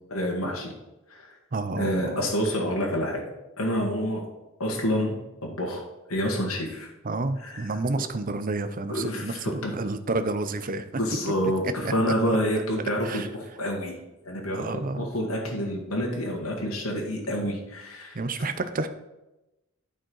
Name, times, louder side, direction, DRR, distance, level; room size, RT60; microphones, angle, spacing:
voice 1, 0.1-0.7 1.1-1.4 1.8-3.2 3.6-4.3 4.6-5.2 5.4-5.8 6.1-6.9 7.4-7.6 8.9-9.7 11.0-13.2 13.6-13.9 14.2-18.2, equal, 80° left, -1 dB, 1.8 m, -28 dB
voice 2, 1.5-2.3 7.0-10.9 13.0-13.3 14.5-15.1 18.1-18.9, right 2 dB, 40° right, 10 dB, 0.6 m, -30 dB
9.0 x 5.2 x 5.5 m, 0.98 s
head